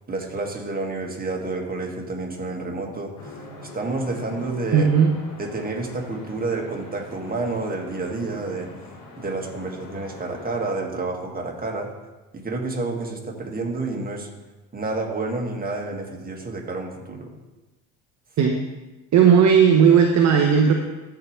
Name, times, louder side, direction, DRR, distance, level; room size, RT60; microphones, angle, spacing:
voice 1, 0.1-4.9 5.4-8.7 9.2-11.9 12.3-14.3 14.7-17.3, right 3 dB, 20° right, 1 dB, 1.8 m, -29 dB
sound 1, 3.1-10.7, left 2 dB, 65° left, 2.5 m, -42 dB
voice 2, 4.7-5.1 18.4-18.6 19.1-20.7, right 7 dB, 40° right, 3 dB, 0.9 m, -15 dB
14.0 x 4.8 x 3.2 m, 1.1 s
hypercardioid pair, 75°, 44 cm